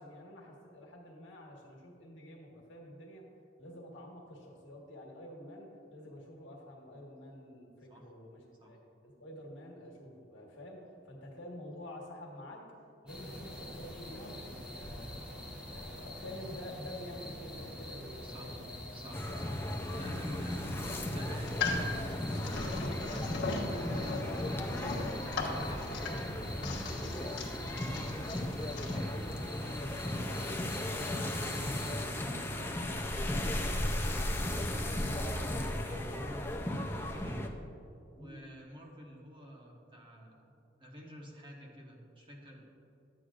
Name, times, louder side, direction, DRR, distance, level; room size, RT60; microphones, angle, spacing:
voice 1, 0.0-3.2 3.6-12.6 13.0-15.2 15.7-18.6 38.2-38.4, left 1 dB, 80° left, -1 dB, 1.5 m, -48 dB
sound 1, 13.1-32.0, left 1 dB, 5° right, 1.2 m, -45 dB
voice 2, 18.2-18.6 18.9-19.6 19.8-22.4 22.8-25.8 26.3-26.5 26.9-27.3 27.6-29.1 29.5-30.6 31.1-35.1 35.4-37.5 38.1-40.5 40.8-42.6, equal, 25° right, -1 dB, 1.0 m, -50 dB
sound 2, 19.1-37.5, left 1 dB, 10° left, 0.4 m, -36 dB
sound 3, 21.3-29.0, left 3 dB, 65° left, 1.2 m, -38 dB
11.5 x 8.0 x 2.5 m, 2.8 s
head